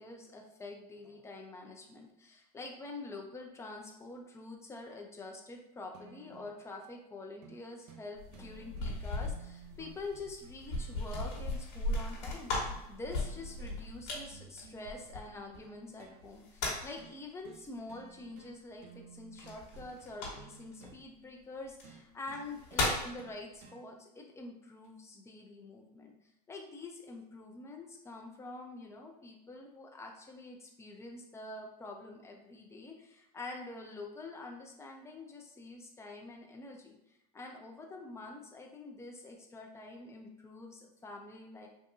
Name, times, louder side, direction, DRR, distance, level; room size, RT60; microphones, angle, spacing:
voice 1, 0.0-26.1 26.5-37.0 37.3-41.7, left 2 dB, 15° left, 1 dB, 0.6 m, -46 dB
sound 1, 5.9-6.6 7.4-7.6 7.9-8.0 8.3-11.4 12.2-12.8 13.1-13.9 14.3-16.2 17.0-17.2 17.4-17.6 17.9-18.5 18.8-21.0 21.8-23.8 24.8-24.9, right 5 dB, 70° right, 0.7 m, -55 dB
sound 2, 8.2-15.6 16.2-17.0 19.4-20.7 21.7-21.8 22.3-23.1, left 2 dB, 65° left, 1.4 m, -37 dB
3.6 x 2.7 x 2.6 m, 0.87 s
supercardioid pair, 115°, 20 cm